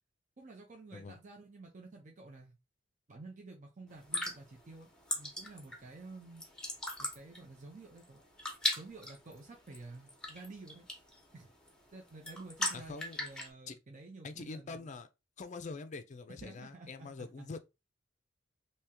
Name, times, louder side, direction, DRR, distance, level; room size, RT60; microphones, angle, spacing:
voice 1, 0.4-2.5 3.1-4.9 5.2-6.4 7.0-8.2 8.8-10.9 11.3-11.5 11.9-15.0 16.4-17.6, right 3 dB, 40° right, 0.6 m, -51 dB
sound 1, 3.9-13.5, left 1 dB, 5° left, 0.9 m, -40 dB
voice 2, 12.7-13.2 13.7-13.8 14.2-15.1 15.4-17.6, left 4 dB, 40° left, 0.4 m, -44 dB
3.4 x 2.8 x 2.9 m
head